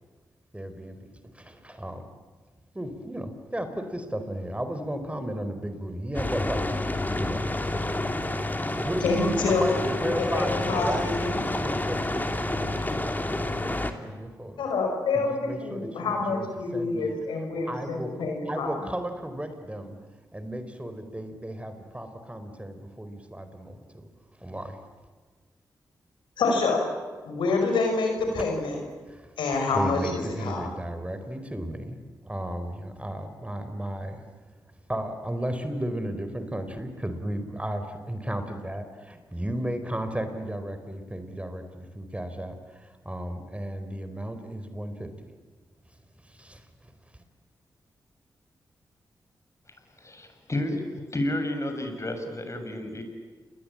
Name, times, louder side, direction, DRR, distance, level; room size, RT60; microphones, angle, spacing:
voice 1, 0.5-1.0 1.3-2.1 2.7-7.5 8.8-14.6 15.1-16.5 16.7-17.1 17.7-20.0 20.3-24.1 24.4-24.8 28.4-28.5 29.1-29.3 29.7-32.0 32.2-34.3 34.9-45.3 46.2-46.9, right 1 dB, 15° right, 8 dB, 4.3 m, -34 dB
sound 1, 6.1-13.9, left 1 dB, 20° left, 2.9 m, -29 dB
voice 2, 9.0-9.7 10.0-11.4 14.6-18.7 26.4-26.8 27.2-28.8 29.4-30.7, left 3 dB, 90° left, 3 dB, 5.3 m, -27 dB
voice 3, 50.0-50.8 51.1-53.0, left 1 dB, 40° left, 6 dB, 6.8 m, -31 dB
28.5 x 21.5 x 8.8 m, 1.4 s
supercardioid pair, 45°, 8 cm